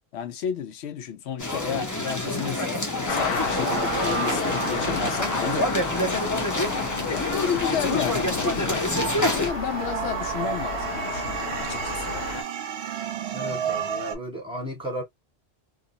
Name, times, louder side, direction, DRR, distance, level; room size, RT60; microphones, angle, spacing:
voice 1, 0.1-6.2 7.1-8.7 9.3-12.2, left 8 dB, 80° left, 0.9 m, -32 dB
sound 1, 1.4-9.5, left 1 dB, 20° left, 0.7 m, -27 dB
sound 2, 3.1-12.4, left 4 dB, 65° left, 1.1 m, -31 dB
sound 3, 3.5-7.6 8.1-14.2, right 8 dB, 80° right, 0.9 m, -33 dB
voice 2, 13.3-15.0, right 1 dB, 5° right, 1.5 m, -34 dB
2.6 x 2.2 x 2.6 m
omnidirectional pair, 1.1 m